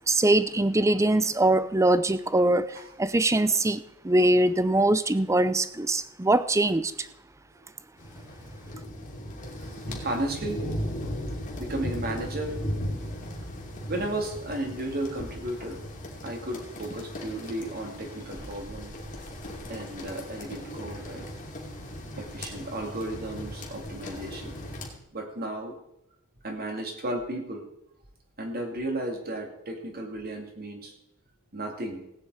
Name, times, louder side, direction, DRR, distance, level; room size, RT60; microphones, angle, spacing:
voice 1, 0.1-2.6 3.0-6.9, right 2 dB, 15° right, 14 dB, 0.5 m, -22 dB
sound 1, 8.0-24.9, equal, 35° left, 2.7 m, -37 dB
voice 2, 9.4-10.7 11.6-12.6 13.9-15.8 16.2-18.9 19.7-21.3 22.2-24.6 25.1-25.7 26.4-27.7 28.4-30.9 31.5-32.0, right 1 dB, 45° right, 3 dB, 2.6 m, -34 dB
17.0 x 9.4 x 4.9 m, 0.80 s
head